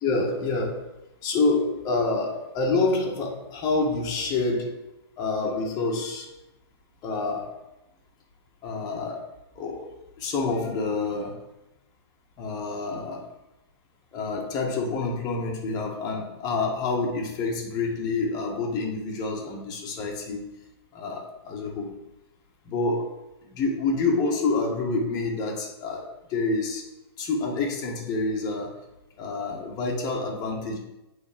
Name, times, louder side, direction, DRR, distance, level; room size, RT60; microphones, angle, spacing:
voice 1, 0.0-0.9 1.2-4.8 5.2-6.3 7.0-7.6 8.6-9.3 9.6-9.9 10.2-11.4 12.4-13.2 14.1-20.4 20.9-21.9 22.7-23.2 23.5-26.8 27.2-28.8 29.2-30.8, left 3 dB, 30° left, -1 dB, 1.8 m, -27 dB
8.3 x 4.0 x 5.3 m, 0.93 s
hypercardioid pair, 140°, 13 cm